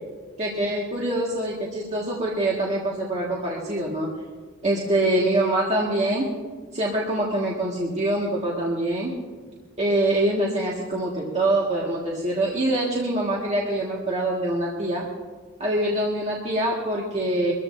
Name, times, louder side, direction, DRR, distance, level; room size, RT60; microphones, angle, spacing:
voice 1, 0.4-4.1 4.6-6.3 6.7-9.1 9.8-15.1 15.6-17.5, right 1 dB, 35° right, -5 dB, 2.0 m, -24 dB
24.0 x 14.0 x 2.8 m, 1.5 s
head